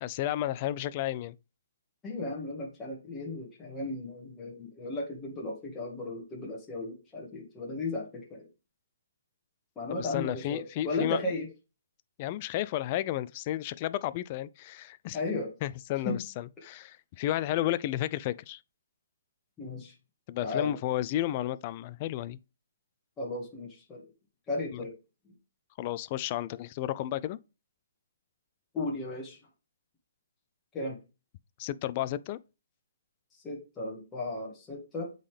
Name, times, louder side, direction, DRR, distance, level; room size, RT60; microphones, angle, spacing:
voice 1, 0.0-1.3 9.9-11.2 12.2-15.2 15.6-18.6 20.3-22.4 24.7-24.8 25.8-27.4 31.6-32.4, left 13 dB, 30° left, 0.4 m, -32 dB
voice 2, 2.0-8.5 9.8-11.5 15.1-15.5 16.0-16.2 19.6-19.9 20.4-20.8 23.2-24.0 24.5-24.9 25.2-25.3 28.7-29.4 30.7-31.0 33.3-35.1, left 2 dB, 15° left, 2.0 m, -35 dB
8.2 x 3.9 x 3.3 m
hypercardioid pair, 155°, 0 cm